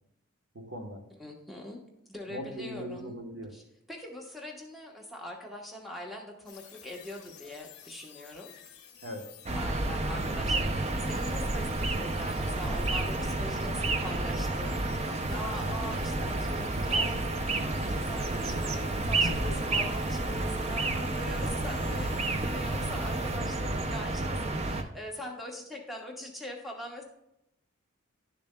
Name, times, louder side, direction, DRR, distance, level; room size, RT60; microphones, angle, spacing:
voice 1, 0.5-1.0 2.3-3.5 9.0-9.3 19.2-19.6, equal, 65° right, 4 dB, 1.1 m, -39 dB
voice 2, 1.2-1.8 2.1-3.2 3.5-3.6 3.9-8.5 9.5-27.0, left 1 dB, ahead, 0 dB, 1.0 m, -43 dB
sound 1, 6.5-23.4, left 8 dB, 50° left, 1.1 m, -51 dB
sound 2, 9.5-24.8, right 2 dB, 30° right, 0.4 m, -30 dB
11.0 x 6.8 x 2.2 m, 0.83 s
head